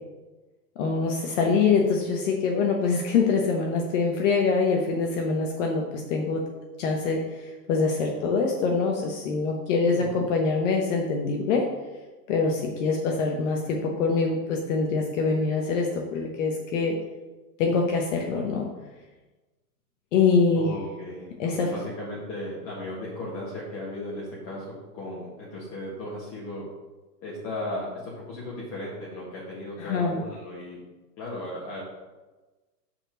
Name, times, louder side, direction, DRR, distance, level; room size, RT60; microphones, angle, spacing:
voice 1, 0.8-6.4 6.8-11.7 12.3-17.0 17.6-18.7 20.1-20.7 21.4-21.7 29.8-30.2, left 4 dB, 50° left, 1 dB, 1.0 m, -24 dB
voice 2, 9.8-10.2 20.5-24.6 24.9-26.6 27.2-30.8 31.2-31.8, left 1 dB, 30° left, -6 dB, 1.6 m, -36 dB
5.4 x 4.4 x 6.2 m, 1.2 s
hypercardioid pair, 145°, 49 cm